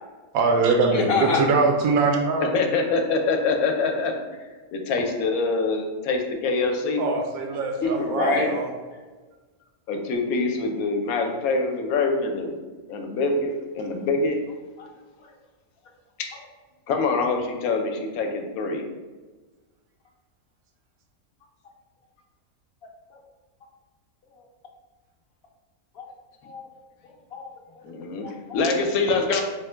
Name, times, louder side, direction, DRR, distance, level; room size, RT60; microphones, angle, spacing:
voice 1, 0.3-2.6 7.0-8.7, right 4 dB, 75° right, 3 dB, 1.0 m, -22 dB
voice 2, 0.9-1.4 7.8-9.0 14.8-14.9 15.2-15.3 16.3-16.4 23.1-23.2 24.4-24.5 25.9-26.1 26.4-26.7 27.0-27.9 28.2-28.7 29.2-29.3, left 3 dB, 55° left, -1 dB, 0.7 m, -28 dB
voice 3, 2.4-4.4 4.7-7.0 8.1-8.5 9.9-12.5 12.9-14.4 16.9-18.9 27.8-28.3 28.5-29.4, left 3 dB, 75° left, 4 dB, 1.0 m, -25 dB
3.6 x 2.1 x 4.4 m, 1.3 s
omnidirectional pair, 1.6 m